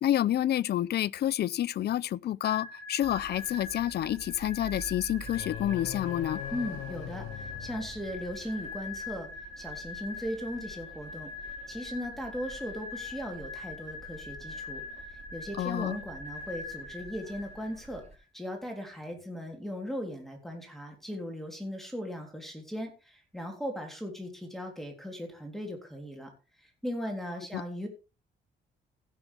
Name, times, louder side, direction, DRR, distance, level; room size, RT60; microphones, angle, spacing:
voice 1, 0.0-6.4 15.6-16.0 27.5-27.6, left 12 dB, 55° left, 0.5 m, -29 dB
sound 1, 2.4-18.0, left 3 dB, 65° right, 4.1 m, -43 dB
sound 2, 3.0-18.2, right 3 dB, 35° right, 2.6 m, -50 dB
sound 3, 5.2-8.6, left 12 dB, 90° left, 0.8 m, -41 dB
voice 2, 6.5-9.3 9.6-11.3 11.7-14.8 15.1-18.0 18.3-26.3 26.6-27.9, equal, ahead, 3.4 m, -38 dB
16.0 x 7.2 x 3.5 m
cardioid pair, 90°, 20 cm